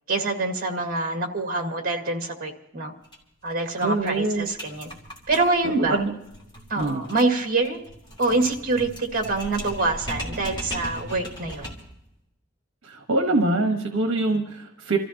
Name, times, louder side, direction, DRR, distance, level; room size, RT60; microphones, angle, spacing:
voice 1, 0.1-2.9 3.4-4.9 5.3-6.0 6.7-7.8 8.2-11.7, right 3 dB, 40° right, 3 dB, 1.9 m, -25 dB
sound 1, 3.0-3.2 3.5-3.6 3.8-12.0, equal, 20° left, 2.9 m, -38 dB
voice 2, 3.8-4.5 5.8-6.1 6.7-7.0 12.8-15.0, right 2 dB, 65° right, 4 dB, 1.3 m, -24 dB
28.0 x 14.5 x 2.9 m, 0.85 s
head